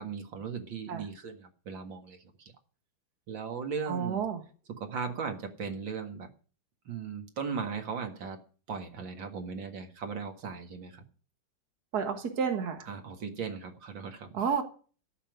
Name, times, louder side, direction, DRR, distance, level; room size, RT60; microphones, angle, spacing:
voice 1, 0.0-2.5 3.3-4.2 4.8-6.3 6.9-8.4 8.7-11.0 12.9-14.4, right 5 dB, 75° right, 5 dB, 2.6 m, -38 dB
voice 2, 3.9-4.4 11.9-12.9 14.3-14.6, right 6 dB, 55° right, 4 dB, 2.1 m, -30 dB
14.0 x 5.9 x 9.3 m, 0.39 s
omnidirectional pair, 2.1 m